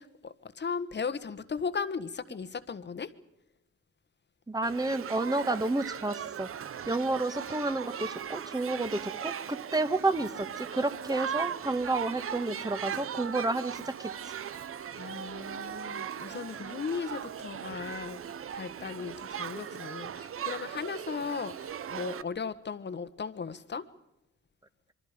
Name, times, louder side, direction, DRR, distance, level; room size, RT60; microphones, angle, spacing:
voice 1, 0.0-3.1 14.9-18.2 18.5-23.8, left 5 dB, 35° left, 13 dB, 1.5 m, -37 dB
voice 2, 4.5-6.5 6.9-14.3, right 2 dB, 10° right, 12 dB, 1.6 m, -30 dB
Shout / Human group actions, 4.6-22.2, right 8 dB, 45° right, 0.9 m, -38 dB
26.5 x 23.5 x 5.2 m, 0.87 s
cardioid pair, 90°, 30 cm